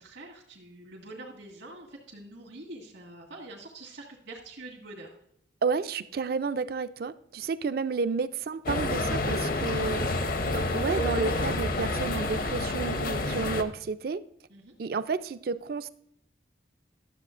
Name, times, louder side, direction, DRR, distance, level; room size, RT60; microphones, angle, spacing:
voice 1, 0.0-5.2 9.8-10.1 14.5-14.7, right 2 dB, 85° right, -4 dB, 1.7 m, -45 dB
voice 2, 5.6-10.0 10.4-14.2 14.8-15.9, right 4 dB, 55° right, 13 dB, 0.4 m, -31 dB
sound 1, 8.7-13.6, left 2 dB, 50° left, 0.6 m, -29 dB
12.0 x 7.4 x 2.5 m, 0.71 s
head